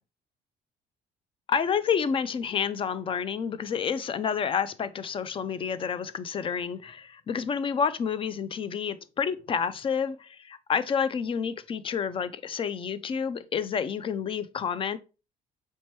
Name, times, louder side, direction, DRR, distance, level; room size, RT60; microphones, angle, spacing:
voice 1, 1.5-15.0, left 7 dB, 30° left, 0.3 m, -29 dB
4.3 x 2.9 x 3.1 m
cardioid pair, 110°, 17 cm